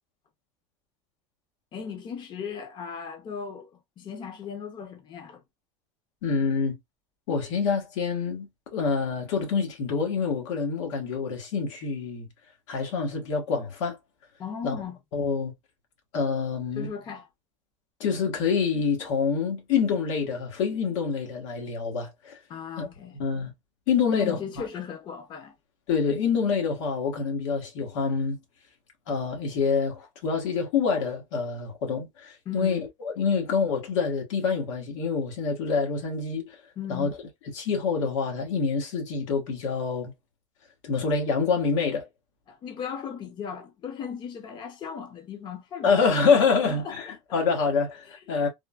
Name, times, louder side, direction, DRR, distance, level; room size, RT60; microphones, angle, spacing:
voice 1, 1.7-5.4 14.4-15.0 16.8-17.3 22.5-23.1 24.1-25.5 32.5-32.8 36.8-37.1 42.5-47.5 48.1-48.2, left 7 dB, 30° left, 0.7 m, -37 dB
voice 2, 6.2-6.8 7.3-12.3 12.7-14.0 14.6-14.8 15.1-15.5 16.1-16.9 18.0-22.4 22.8-22.9 23.2-23.5 23.9-24.4 25.9-28.4 29.1-32.8 33.0-36.6 36.9-37.1 37.5-40.1 40.8-42.1 45.8-48.5, left 5 dB, 90° left, 1.4 m, -26 dB
3.5 x 2.2 x 2.4 m
supercardioid pair, 145°, 15 cm